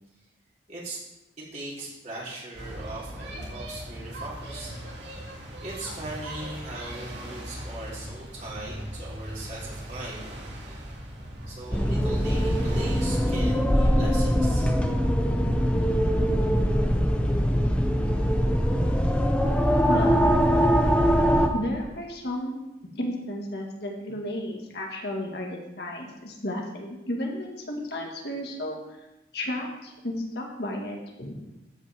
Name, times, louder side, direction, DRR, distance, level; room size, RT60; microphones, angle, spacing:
voice 1, 0.7-1.0 1.4-4.7 5.6-10.3 10.6-10.8 11.5-14.7, right 2 dB, 40° right, -6 dB, 3.6 m, -39 dB
sound 1, 2.5-13.6, right 1 dB, 70° right, 2.6 m, -39 dB
sound 2, 11.7-21.5, equal, 5° left, 0.8 m, -22 dB
voice 2, 19.9-20.3 21.5-22.6 23.0-29.0 29.3-31.4, left 1 dB, 60° left, 0 dB, 1.8 m, -33 dB
13.5 x 8.6 x 3.5 m, 0.97 s
head